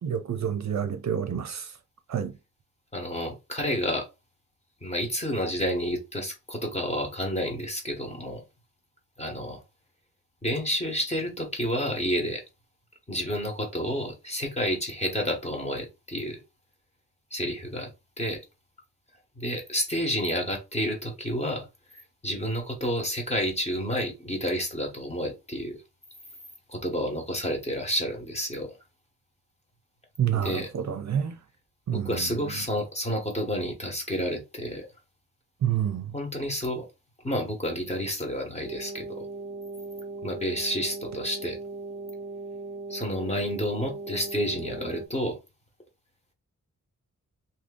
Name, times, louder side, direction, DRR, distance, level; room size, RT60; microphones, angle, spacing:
voice 1, 0.0-1.7 2.1-2.3 30.2-31.3 31.9-32.2 35.6-36.1, right 9 dB, 55° right, 0.5 m, -28 dB
voice 2, 2.9-4.1 4.8-8.4 9.2-9.6 10.4-12.4 13.1-16.4 17.3-17.9 18.2-18.4 19.4-21.7 22.2-25.8 26.7-28.8 30.3-30.7 31.9-34.9 36.1-36.8 37.2-39.3 40.2-41.6 42.9-45.4, equal, 20° left, 1.0 m, -30 dB
sound 1, 38.6-45.1, right 3 dB, 10° right, 0.7 m, -38 dB
2.8 x 2.6 x 3.6 m
wide cardioid pair, 160°, 33 cm